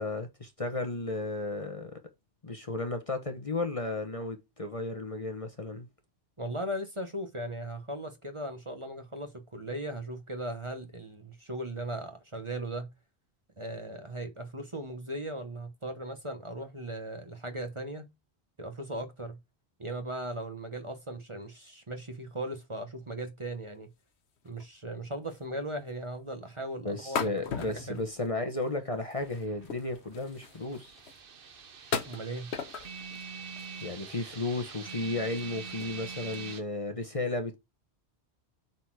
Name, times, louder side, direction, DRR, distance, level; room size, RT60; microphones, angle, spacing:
voice 1, 0.0-2.0 2.4-5.9 26.8-31.0 33.8-37.6, left 2 dB, 30° left, 1.1 m, -34 dB
voice 2, 6.4-12.9 13.6-18.1 18.6-19.4 19.8-23.9 24.4-28.1 32.0-32.5, right 1 dB, 30° right, 1.1 m, -38 dB
sound 1, 24.4-24.7 25.0-25.1 25.3-25.6 25.9-26.0 27.1-28.7 29.0-31.2 31.9-33.3 33.6-34.2 34.7-34.8 35.2-35.5 35.8-36.0 36.3-36.5, left 6 dB, 75° left, 1.1 m, -38 dB
sound 2, 29.2-36.6, right 5 dB, 55° right, 1.1 m, -44 dB
8.0 x 4.3 x 4.7 m
omnidirectional pair, 1.1 m